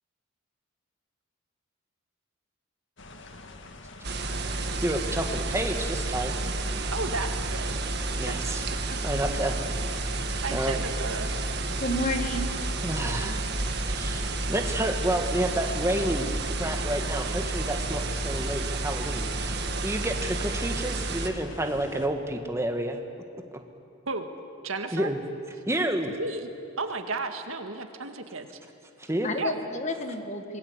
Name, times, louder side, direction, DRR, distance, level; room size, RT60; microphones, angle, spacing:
sound 1, 3.0-22.1, left 2 dB, 60° left, 1.9 m, -44 dB
sound 2, 4.0-21.3, right 2 dB, 50° right, 1.7 m, -30 dB
voice 1, 4.8-6.4 8.2-8.7 9.0-9.6 10.5-10.8 12.8-13.4 13.8-14.2 14.5-16.3 16.6-23.0 24.9-25.2 25.7-26.2 29.0-29.3, right 1 dB, 15° right, 5 dB, 1.6 m, -29 dB
voice 2, 6.9-7.8 8.3-8.4 8.7-9.0 10.4-11.3 13.0-13.4 24.1-24.3 24.6-25.1 26.1-26.5 26.8-28.5 29.4-29.5, right 3 dB, 80° right, 6 dB, 1.9 m, -33 dB
voice 3, 11.8-12.5 29.2-30.6, left 1 dB, 35° left, 6 dB, 1.6 m, -30 dB
26.0 x 21.0 x 8.1 m, 2.5 s
head